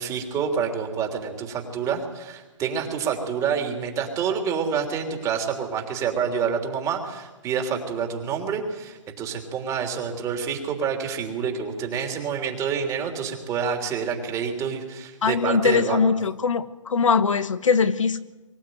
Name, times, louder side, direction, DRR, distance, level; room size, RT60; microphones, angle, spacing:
voice 1, 0.0-16.0, right 6 dB, 20° right, 3 dB, 3.4 m, -28 dB
voice 2, 15.2-18.2, left 5 dB, 75° left, 11 dB, 1.3 m, -21 dB
24.0 x 15.5 x 9.4 m, 1.1 s
hypercardioid pair, 140°, 17 cm